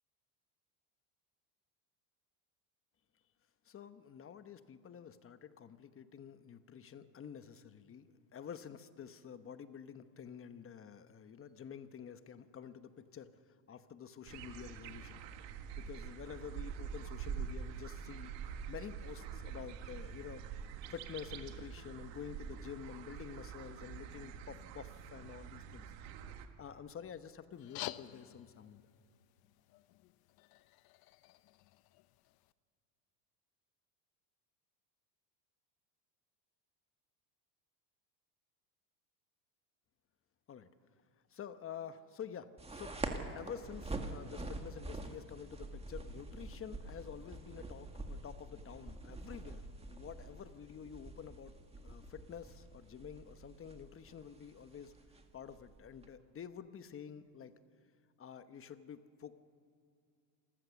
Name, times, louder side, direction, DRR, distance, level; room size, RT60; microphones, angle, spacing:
voice 1, 3.7-13.3 13.7-15.2 15.8-18.3 18.7-20.5 20.9-25.8 26.6-28.8 40.5-40.7 41.3-43.0 43.3-49.6 49.9-51.5 51.8-54.9 55.3-57.5 58.2-59.3, left 8 dB, 25° left, 11 dB, 1.0 m, -49 dB
sound 1, 14.3-26.5, right 7 dB, 65° right, 1.8 m, -46 dB
sound 2, 27.5-32.5, left 16 dB, 50° left, 0.7 m, -50 dB
sound 3, 42.6-56.1, right 2 dB, 10° right, 1.9 m, -46 dB
27.0 x 15.0 x 7.0 m, 2.5 s
supercardioid pair, 115°, 49 cm